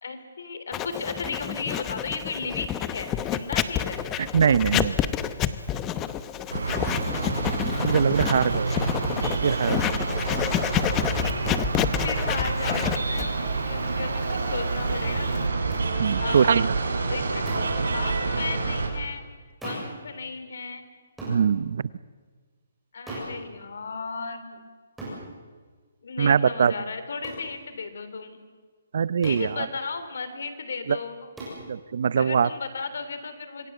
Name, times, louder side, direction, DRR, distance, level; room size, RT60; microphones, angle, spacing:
voice 1, 0.0-4.0 12.0-13.3 13.6-15.3 16.2-16.7 17.1-17.5 17.9-19.2 19.6-20.9 22.9-24.6 26.0-28.4 29.2-31.3 32.2-33.7, left 4 dB, 65° left, 10 dB, 3.4 m, -35 dB
Writing, 0.7-15.5, left 10 dB, 15° left, 0.8 m, -29 dB
voice 2, 4.2-5.0 7.8-8.7 9.4-9.8 16.0-16.7 21.3-21.8 26.2-26.7 28.9-29.7 30.9-31.0 31.7-32.5, right 7 dB, 50° right, 18 dB, 0.7 m, -22 dB
sound 1, 6.5-18.9, right 3 dB, 90° right, 6.2 m, -28 dB
sound 2, 15.7-15.9 17.4-17.8 19.6-20.0 21.2-21.4 23.1-23.4 25.0-25.2 27.2-27.5 29.2-29.5 31.4-31.6, right 2 dB, 5° right, 7.3 m, -36 dB
26.0 x 21.5 x 8.0 m, 1.4 s
hypercardioid pair, 170°, 0 cm